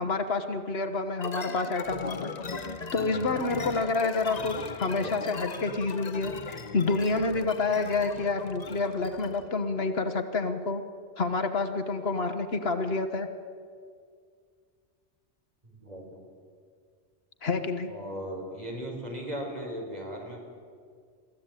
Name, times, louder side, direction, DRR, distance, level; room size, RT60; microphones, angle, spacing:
voice 1, 0.0-2.3 2.9-10.8 11.2-13.3 17.4-17.9, left 3 dB, 65° left, 7 dB, 1.4 m, -28 dB
sound 1, 1.2-9.5, left 4 dB, 40° left, 1.0 m, -38 dB
voice 2, 15.6-16.2 17.9-20.4, equal, 35° right, 0 dB, 4.6 m, -37 dB
22.5 x 14.5 x 9.1 m, 2.1 s
omnidirectional pair, 1.1 m